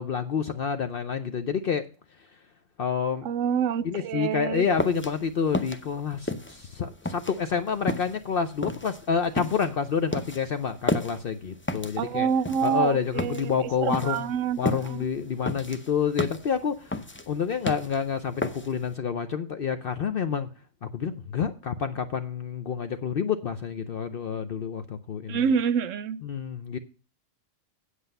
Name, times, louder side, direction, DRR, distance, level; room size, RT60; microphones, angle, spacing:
voice 1, 0.0-1.9 2.8-3.3 3.8-12.3 12.6-14.3 14.6-17.0 17.3-20.5 20.8-25.4 26.2-26.8, left 6 dB, 55° left, 0.7 m, -28 dB
voice 2, 3.2-4.7 12.0-13.5 13.8-14.6 14.8-15.0 25.3-26.2, right 7 dB, 80° right, 1.0 m, -27 dB
sound 1, 4.6-18.9, left 2 dB, 15° left, 0.4 m, -33 dB
8.2 x 7.9 x 5.3 m
omnidirectional pair, 1.3 m